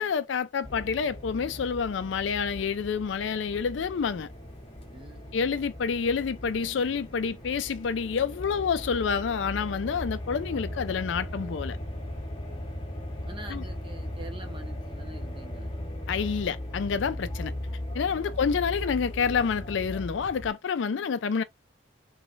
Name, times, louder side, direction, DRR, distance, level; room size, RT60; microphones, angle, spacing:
voice 1, 0.0-4.3 5.3-11.8 13.5-13.6 16.1-17.5 17.9-21.4, left 6 dB, 65° left, 0.4 m, -28 dB
sound 1, 0.6-20.5, left 1 dB, 30° left, 0.9 m, -38 dB
voice 2, 4.9-5.5 12.5-15.7 18.2-18.8, right 2 dB, 25° right, 0.9 m, -47 dB
3.1 x 3.1 x 2.5 m
head